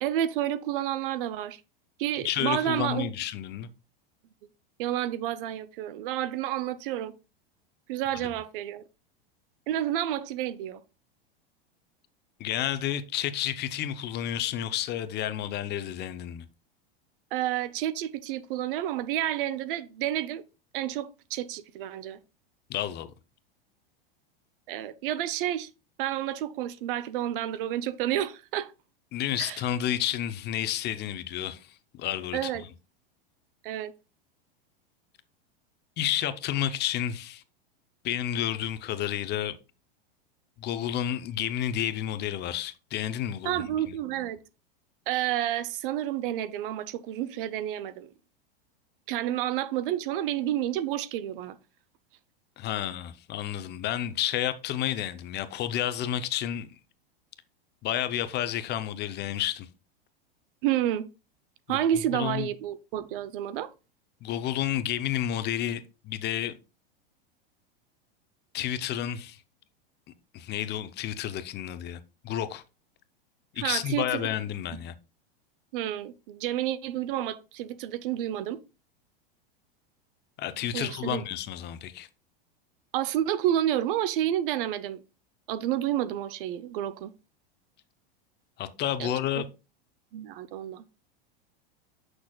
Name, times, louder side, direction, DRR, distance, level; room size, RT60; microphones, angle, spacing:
voice 1, 0.0-1.6 2.0-3.1 4.8-7.1 7.9-8.8 9.7-10.8 17.3-20.4 20.7-22.2 24.7-25.7 26.0-28.7 29.4-29.6 32.3-32.6 33.6-33.9 43.4-44.4 45.1-48.1 49.1-51.6 60.6-61.1 61.7-63.7 73.6-74.3 75.7-78.6 80.7-81.2 82.9-85.0 85.5-87.1 89.0-89.1 90.1-90.8, right 12 dB, 65° right, 0.7 m, -30 dB
voice 2, 2.2-3.7 12.4-16.4 22.7-23.1 29.1-31.7 32.0-32.7 36.0-37.4 38.0-39.6 40.6-43.9 52.6-56.7 57.8-59.7 61.7-61.8 62.1-62.5 64.2-66.5 68.5-69.4 70.3-72.6 73.5-74.9 80.4-82.1 88.6-89.5, left 11 dB, 35° left, 0.7 m, -31 dB
8.5 x 6.2 x 2.3 m
hypercardioid pair, 110°, 29 cm